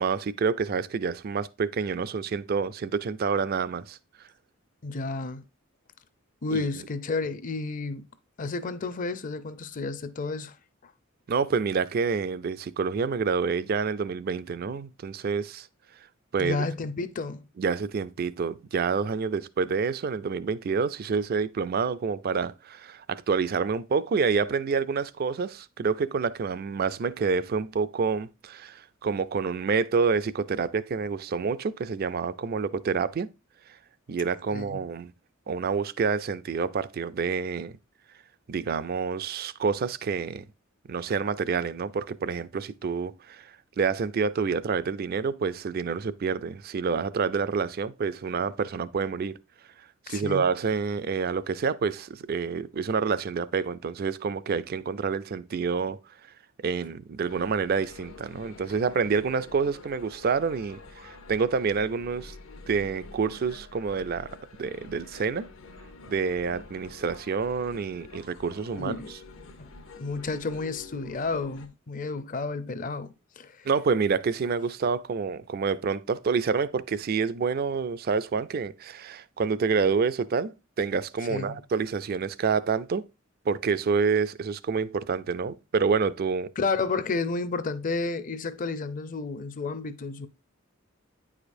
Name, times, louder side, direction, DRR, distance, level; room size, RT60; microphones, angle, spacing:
voice 1, 0.0-4.0 6.5-6.6 11.3-15.7 16.3-16.6 17.6-33.3 34.1-35.1 35.5-37.7 38.5-40.5 40.9-49.4 50.1-56.0 56.6-62.3 62.7-64.3 64.6-65.5 66.1-69.2 73.6-83.0 83.5-86.5, right 5 dB, 50° right, 0.4 m, -28 dB
voice 2, 4.8-5.4 6.4-8.1 8.4-10.5 10.8-10.9 16.4-17.4 34.5-34.8 50.1-50.4 68.7-69.1 69.6-69.7 70.0-73.7 81.3-81.6 86.6-90.3, left 3 dB, 40° left, 0.6 m, -31 dB
sound 1, 57.2-71.7, left 3 dB, 80° left, 1.0 m, -47 dB
9.1 x 4.9 x 2.6 m
head